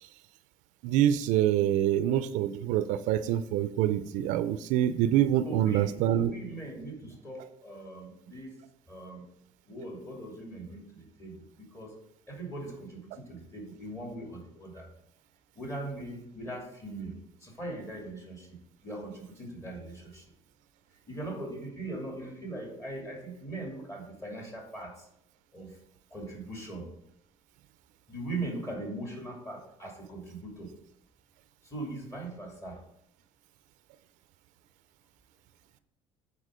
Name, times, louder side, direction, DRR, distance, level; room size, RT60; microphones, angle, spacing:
voice 1, 0.8-6.3, right 11 dB, 80° right, 13 dB, 0.4 m, -26 dB
voice 2, 5.4-8.5 8.9-9.2 9.7-10.8 11.2-11.3 11.7-11.9 12.3-13.0 13.3-14.8 15.6-17.1 17.4-18.4 18.8-19.9 21.1-24.9 25.5-25.7 26.1-26.8 28.1-30.7 31.7-32.7, right 2 dB, 25° left, -1 dB, 2.7 m, -40 dB
8.9 x 4.3 x 4.9 m, 0.73 s
cardioid pair, 110°, 13 cm